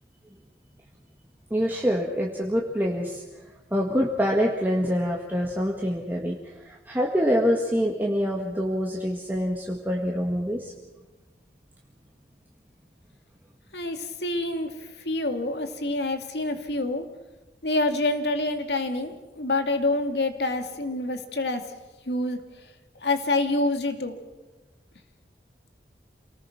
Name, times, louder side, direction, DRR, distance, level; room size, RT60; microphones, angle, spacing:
voice 1, 1.5-3.2 3.7-10.7, equal, 10° right, -2 dB, 1.8 m, -25 dB
voice 2, 13.7-14.7 15.0-17.1 17.6-21.6 22.1-22.4 23.0-24.2, left 2 dB, 70° left, 6 dB, 2.3 m, -27 dB
28.0 x 19.0 x 6.0 m, 1.2 s
head